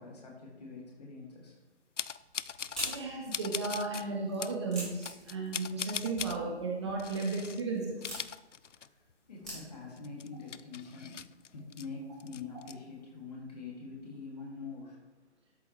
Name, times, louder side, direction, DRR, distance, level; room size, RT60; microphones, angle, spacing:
voice 1, 0.0-1.6 8.6-8.9 9.3-11.2 11.5-15.0, left 4 dB, 35° left, -2 dB, 2.5 m, -45 dB
sound 1, 2.0-3.0 3.3-4.0 4.4-4.6 5.0-6.4 7.0-7.6 7.9-9.1 9.4-9.5 10.0-11.9 12.2-12.7, left 7 dB, 90° left, 0.5 m, -40 dB
sound 2, 2.1-10.1, right 1 dB, ahead, 3.0 m, -48 dB
voice 2, 2.8-8.0, right 3 dB, 25° right, -3 dB, 1.4 m, -34 dB
12.0 x 7.5 x 3.3 m, 1.1 s
figure-of-eight pair, 150°, 35 cm